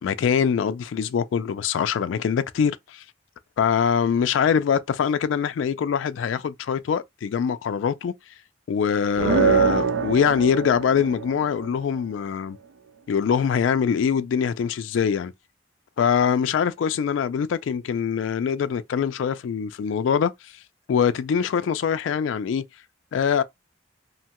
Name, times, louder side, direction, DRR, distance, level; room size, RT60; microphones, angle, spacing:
voice 1, 0.0-3.0 3.6-8.1 8.7-12.6 13.1-15.3 16.0-20.5 20.9-22.6 23.1-23.4, left 7 dB, 90° left, 0.3 m, -23 dB
sound 1, 9.2-11.9, right 6 dB, 80° right, 0.3 m, -23 dB
2.7 x 2.1 x 2.9 m
head